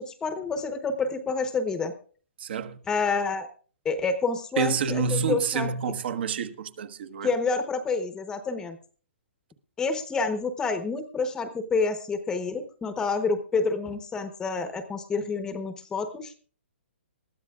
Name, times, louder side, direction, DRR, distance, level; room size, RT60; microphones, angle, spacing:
voice 1, 0.0-1.9 2.9-3.5 3.8-5.7 7.2-8.8 9.8-16.3, left 4 dB, 10° left, 0.9 m, -28 dB
voice 2, 2.4-2.8 4.6-7.3, right 5 dB, 55° right, 1.3 m, -28 dB
21.0 x 14.0 x 2.4 m
hypercardioid pair, 160°, 7 cm